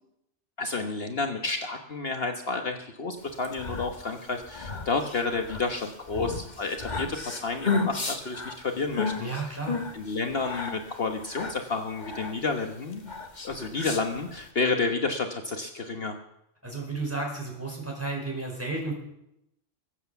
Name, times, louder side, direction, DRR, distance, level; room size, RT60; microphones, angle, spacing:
voice 1, 0.6-9.6 9.9-13.1 13.4-16.2, left 3 dB, 55° left, 4 dB, 1.4 m, -30 dB
sound 1, 3.3-14.5, left 4 dB, 35° left, 1.7 m, -34 dB
voice 2, 9.2-9.8 16.6-18.9, right 3 dB, 10° right, -1 dB, 5.0 m, -32 dB
23.0 x 8.3 x 7.0 m, 0.82 s
omnidirectional pair, 1.2 m